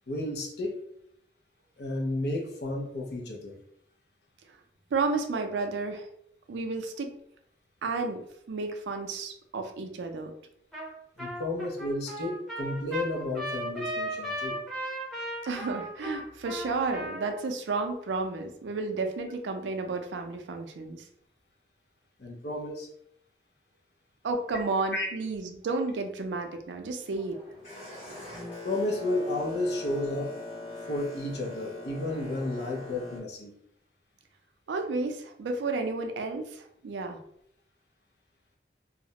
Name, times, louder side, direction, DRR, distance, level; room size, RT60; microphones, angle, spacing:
voice 1, 0.1-0.8 1.8-3.6 11.2-14.6 22.2-22.9 24.9-25.1 28.6-30.3 30.9-33.5, left 1 dB, 65° left, 0 dB, 0.6 m, -32 dB
voice 2, 4.9-6.1 6.5-7.1 7.8-8.2 8.5-10.3 15.4-21.1 24.2-27.4 34.7-37.2, right 3 dB, 90° right, 5 dB, 0.4 m, -32 dB
Trumpet, 10.7-10.9 11.2-17.4, right 1 dB, ahead, 0.6 m, -36 dB
Boat Water vehicle, 27.0-33.2, left 2 dB, 35° left, 1.0 m, -42 dB
2.3 x 2.0 x 2.8 m, 0.72 s
head